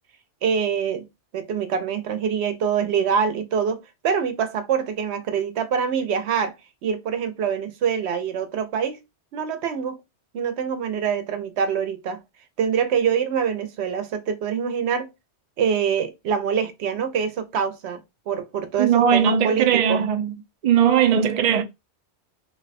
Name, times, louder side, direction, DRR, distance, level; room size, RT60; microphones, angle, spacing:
voice 1, 0.4-1.1 1.3-6.5 6.8-9.0 9.3-10.0 10.3-12.2 12.6-15.1 15.6-18.0 18.3-20.0, right 7 dB, 80° right, 0.9 m, -25 dB
voice 2, 18.8-20.3 20.6-21.6, right 8 dB, 50° right, 0.5 m, -19 dB
2.9 x 2.1 x 4.0 m
omnidirectional pair, 1.1 m